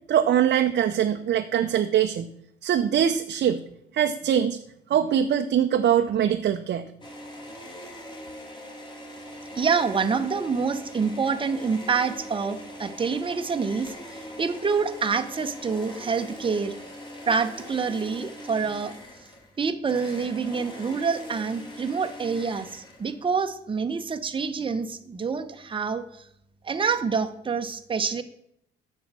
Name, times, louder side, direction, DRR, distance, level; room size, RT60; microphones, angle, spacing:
voice 1, 0.1-2.3 2.6-3.6 3.9-4.6 4.9-6.8, right 9 dB, 60° right, 6 dB, 0.6 m, -22 dB
sound 1, 7.0-23.3, equal, 25° left, 2.5 m, -42 dB
voice 2, 9.6-16.7 17.3-18.9 19.6-26.3 26.6-28.2, right 5 dB, 25° right, 7 dB, 0.8 m, -27 dB
9.3 x 6.4 x 6.1 m, 0.73 s
cardioid pair, 90°, 20 cm